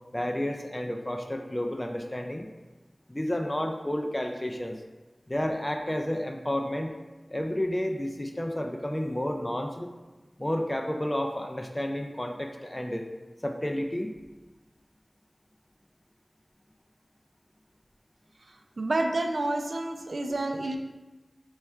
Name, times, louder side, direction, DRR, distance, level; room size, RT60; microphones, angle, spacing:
voice 1, 0.1-2.5 3.1-4.8 5.3-6.9 7.3-9.9 10.4-13.1 13.4-14.1, left 1 dB, 20° left, 3 dB, 0.3 m, -31 dB
voice 2, 18.8-20.8, right 2 dB, 75° right, 4 dB, 0.4 m, -29 dB
4.2 x 2.3 x 4.3 m, 1.2 s
wide cardioid pair, 50°, 0 cm